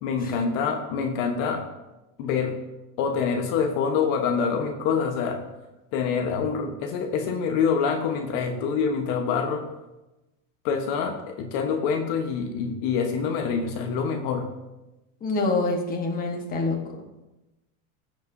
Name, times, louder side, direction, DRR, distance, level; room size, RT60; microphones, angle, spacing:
voice 1, 0.0-1.6 2.2-2.5 3.0-5.4 5.9-9.7 10.6-14.5, left 6 dB, 55° left, 4 dB, 1.1 m, -26 dB
voice 2, 15.2-16.8, left 3 dB, 20° left, 1 dB, 1.2 m, -26 dB
15.5 x 5.2 x 2.6 m, 1.0 s
supercardioid pair, 145°, 43 cm